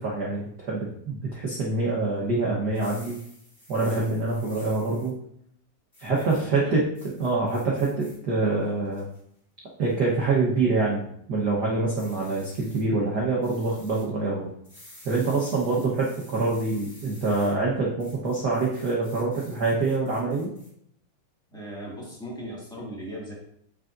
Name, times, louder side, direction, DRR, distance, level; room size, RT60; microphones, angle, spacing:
voice 1, 0.0-3.2 3.7-5.2 6.0-6.8 7.2-9.1 9.8-14.5 15.0-20.5, right 3 dB, 65° right, -4 dB, 1.0 m, -25 dB
sound 1, 2.7-5.1 5.9-6.4 6.9-8.2 8.6-9.2 9.8-10.1 11.9-12.8 13.4-14.1 14.6-17.5 18.0-20.7, left 1 dB, 20° left, 2.3 m, -51 dB
voice 2, 6.1-6.8 21.5-23.3, equal, ahead, -5 dB, 1.3 m, -38 dB
7.7 x 6.4 x 2.6 m, 0.70 s
omnidirectional pair, 3.5 m